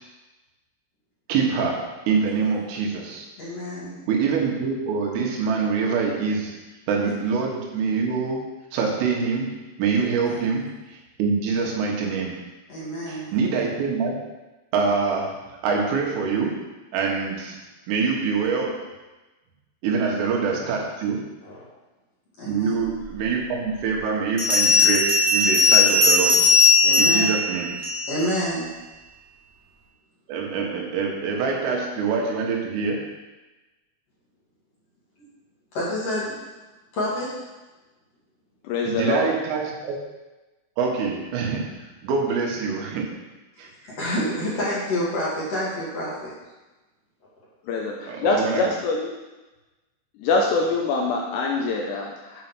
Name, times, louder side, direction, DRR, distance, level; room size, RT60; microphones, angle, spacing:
voice 1, 1.3-3.3 4.1-6.6 6.9-12.4 13.1-14.1 14.7-15.4 15.6-16.6 16.9-17.6 17.9-18.9 19.8-21.3 22.5-26.5 27.0-27.8 30.3-33.1 38.9-40.0 40.8-43.1 43.6-43.7 48.1-48.7, right 5 dB, 90° right, -1 dB, 4.1 m, -25 dB
voice 2, 3.4-4.0 10.2-10.4 12.7-13.3 21.4-21.6 22.4-22.7 26.8-27.4 28.1-28.7 35.7-36.3 36.9-37.3 43.9-46.3, equal, 40° left, -8 dB, 2.7 m, -28 dB
Bell, 23.2-23.3 24.4-28.3, left 3 dB, 5° right, 2.1 m, -18 dB
voice 3, 38.6-39.3 47.7-49.1 50.2-52.4, left 3 dB, 80° left, 0 dB, 2.6 m, -24 dB
8.6 x 5.5 x 6.2 m, 1.1 s
omnidirectional pair, 5.6 m